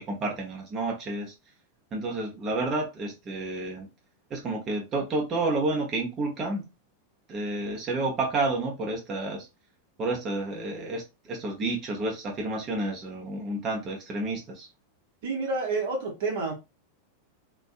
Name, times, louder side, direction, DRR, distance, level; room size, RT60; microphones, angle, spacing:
voice 1, 0.0-1.3 1.9-3.9 4.3-6.6 7.3-9.5 10.0-14.7, right 2 dB, 30° right, 0.8 m, -30 dB
voice 2, 15.2-16.5, right 3 dB, 55° right, 0.9 m, -29 dB
2.6 x 2.3 x 2.3 m
figure-of-eight pair, 90°, 0 cm